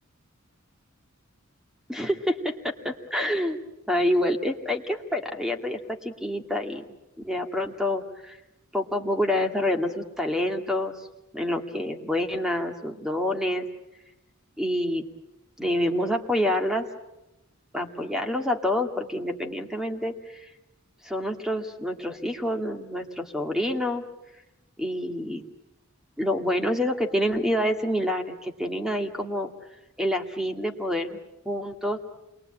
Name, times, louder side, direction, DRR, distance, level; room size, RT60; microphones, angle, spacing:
voice 1, 1.9-3.6 3.9-6.8 7.2-8.4 8.7-11.1 11.3-13.7 14.6-15.0 15.6-16.9 17.7-20.5 21.0-24.0 24.8-25.4 26.2-29.5 30.0-31.2 31.5-32.0, left 1 dB, 5° right, 5 dB, 2.1 m, -27 dB
28.5 x 22.5 x 8.9 m, 0.93 s
head